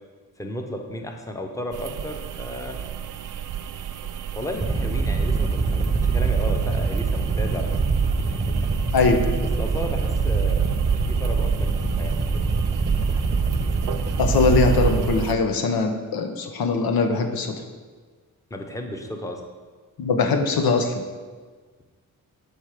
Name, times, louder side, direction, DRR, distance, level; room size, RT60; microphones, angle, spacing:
voice 1, 0.4-2.8 4.3-7.8 9.6-10.7 11.0-11.7 12.0-12.2 18.5-19.4, left 1 dB, 10° left, 3 dB, 0.8 m, -33 dB
sound 1, 1.7-15.3, right 9 dB, 60° right, 0.5 m, -34 dB
sound 2, 4.5-15.1, right 4 dB, 20° right, 0.8 m, -23 dB
voice 2, 14.2-17.5 20.0-21.0, left 4 dB, 80° left, 5 dB, 0.8 m, -21 dB
7.3 x 4.5 x 4.8 m, 1.5 s
cardioid pair, 80°, 36 cm